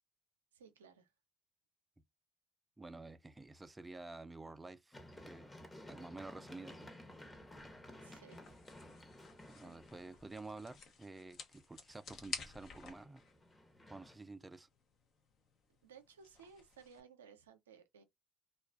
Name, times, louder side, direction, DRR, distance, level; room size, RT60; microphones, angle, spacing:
voice 1, 0.5-1.1 8.0-9.0 9.6-9.8 15.8-18.0, right 6 dB, 90° right, 0.4 m, -60 dB
voice 2, 2.8-5.0 5.3-5.5 5.9-6.9 9.5-13.2 13.9-14.7, right 2 dB, 15° right, 0.4 m, -50 dB
Run, 4.9-10.8 12.6-14.1, left 1 dB, 20° left, 0.9 m, -55 dB
sound 1, 5.7-17.0, left 5 dB, 55° left, 0.8 m, -53 dB
2.3 x 2.3 x 2.3 m
hypercardioid pair, 60°, 0 cm